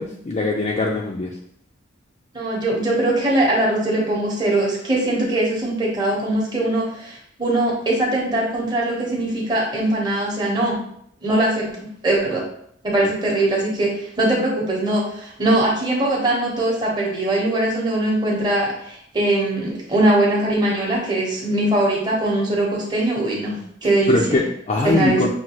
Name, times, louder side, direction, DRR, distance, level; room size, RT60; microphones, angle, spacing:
voice 1, 0.0-1.3 24.1-25.3, left 3 dB, 35° left, -1 dB, 0.4 m, -21 dB
voice 2, 2.3-10.8 11.2-12.4 12.8-24.2 24.8-25.2, right 1 dB, 25° right, -4 dB, 1.0 m, -21 dB
5.8 x 2.3 x 2.9 m, 0.68 s
head